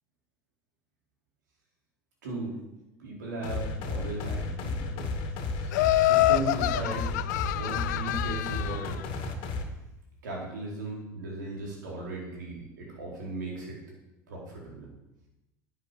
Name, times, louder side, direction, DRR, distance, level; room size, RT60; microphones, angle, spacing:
voice 1, 2.2-2.5 3.0-5.1 5.4-7.1 7.5-9.0 10.2-13.8 14.3-14.9, right 2 dB, 85° right, -2 dB, 4.2 m, -37 dB
sound 1, 3.4-9.6, left 3 dB, 60° left, 2.2 m, -33 dB
Laughter, 5.7-8.9, left 15 dB, 75° left, 0.5 m, -26 dB
10.5 x 8.1 x 7.6 m, 0.94 s
hypercardioid pair, 75°, 10 cm